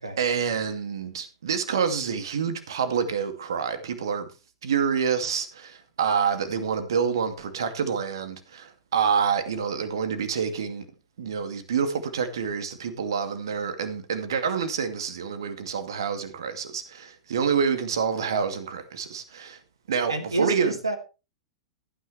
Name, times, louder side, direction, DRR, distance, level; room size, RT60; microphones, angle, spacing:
voice 1, 0.2-4.3 4.6-10.8 11.2-19.6 19.9-20.8, right 6 dB, 65° right, 2.4 m, -27 dB
voice 2, 20.1-21.0, right 3 dB, 80° right, 2.5 m, -28 dB
15.0 x 9.9 x 3.4 m
figure-of-eight pair, 100°, 3 cm